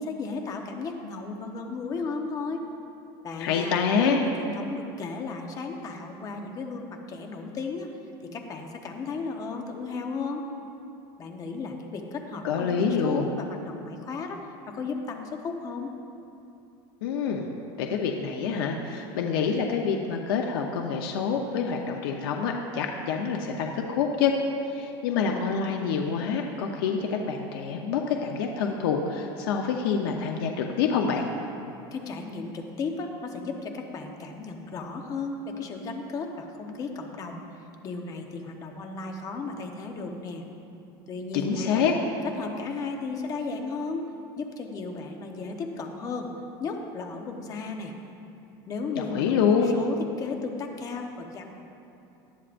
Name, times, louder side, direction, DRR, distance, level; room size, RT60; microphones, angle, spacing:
voice 1, 0.0-2.6 3.2-7.9 8.2-10.4 11.2-15.9 31.9-40.4 41.1-41.9 42.2-44.0 44.4-46.3 46.6-47.9 48.7-51.5, left 4 dB, 30° left, 3 dB, 1.1 m, -34 dB
voice 2, 3.4-4.2 12.4-13.3 17.0-17.5 17.8-24.3 24.6-31.2 41.3-41.9 49.0-49.7, left 6 dB, 85° left, 2 dB, 0.9 m, -26 dB
19.0 x 12.5 x 2.6 m, 2.8 s
supercardioid pair, 155°, 12 cm